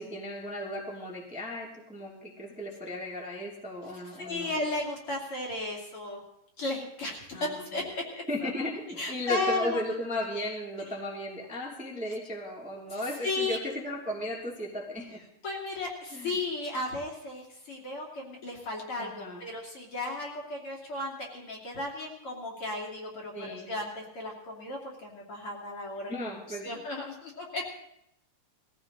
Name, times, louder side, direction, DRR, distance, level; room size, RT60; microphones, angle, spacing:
voice 1, 0.0-4.5 7.3-7.8 8.3-15.2 16.1-16.4 19.0-19.4 23.3-23.7 26.1-26.8, left 1 dB, 5° right, -2 dB, 2.3 m, -36 dB
voice 2, 4.1-6.2 6.6-8.5 9.0-9.8 12.9-13.6 15.4-26.2 26.6-27.6, left 2 dB, 40° left, -1 dB, 3.2 m, -35 dB
21.0 x 15.5 x 4.0 m, 0.79 s
omnidirectional pair, 3.9 m